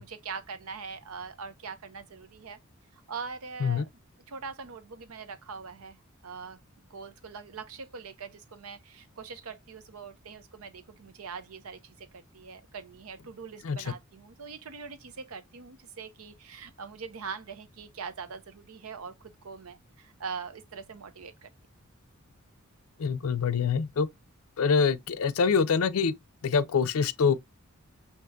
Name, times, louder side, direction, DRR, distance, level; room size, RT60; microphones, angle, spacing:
voice 1, 0.0-2.6 2.9-3.9 4.3-6.0 6.2-6.6 6.9-21.5, right 5 dB, 90° right, 0.7 m, -42 dB
voice 2, 23.0-24.1 24.6-26.1 26.4-27.4, left 5 dB, 80° left, 0.5 m, -25 dB
5.7 x 2.9 x 2.2 m
head